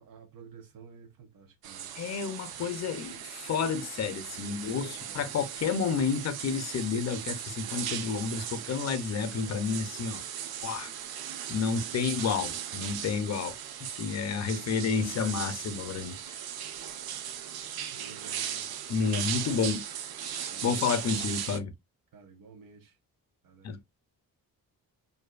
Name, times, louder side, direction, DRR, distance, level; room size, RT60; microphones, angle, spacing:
voice 1, 0.0-1.9 4.2-5.4 11.6-12.3 17.8-18.7 19.5-19.8 20.5-21.2 22.1-23.0 23.4-23.8, right 5 dB, 65° right, 0.9 m, -52 dB
sound 1, 1.6-21.6, right 9 dB, 80° right, 0.5 m, -38 dB
voice 2, 2.0-10.3 10.6-10.9 11.5-13.6 13.9-16.4 18.9-19.8 20.2-21.7 23.6-23.8, left 6 dB, 45° left, 0.5 m, -30 dB
2.6 x 2.3 x 2.3 m
cardioid pair, 120°, 37 cm